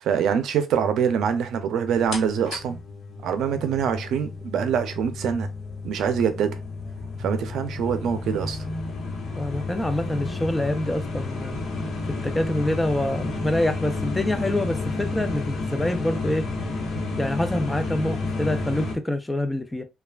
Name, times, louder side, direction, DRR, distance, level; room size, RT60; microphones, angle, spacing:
voice 1, 0.0-2.8 3.2-5.5 5.8-6.6 7.2-8.6, right 7 dB, 80° right, 0.5 m, -24 dB
sound 1, 2.1-19.0, left 3 dB, 75° left, 1.0 m, -31 dB
voice 2, 9.4-11.6 12.2-16.4 17.2-19.8, left 1 dB, 15° left, 0.5 m, -26 dB
3.2 x 2.3 x 2.3 m
cardioid pair, 85°, 0 cm